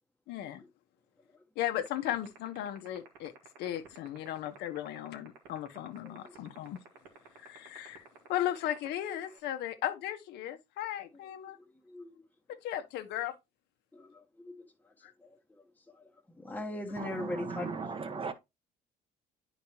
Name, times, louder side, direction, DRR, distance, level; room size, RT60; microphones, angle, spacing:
voice 1, 0.3-0.6 1.6-3.3 3.6-6.8 7.4-11.6 12.6-13.3, left 12 dB, 80° left, 1.0 m, -36 dB
sound 1, 1.9-9.4, right 17 dB, 90° right, 1.7 m, -52 dB
voice 2, 6.0-6.4 9.1-9.2 11.6-12.2 13.9-14.5 15.2-17.7, left 1 dB, 10° left, 1.0 m, -41 dB
voice 3, 17.0-18.3, right 4 dB, 30° right, 1.0 m, -37 dB
9.4 x 5.1 x 2.9 m
cardioid pair, 110°, 17 cm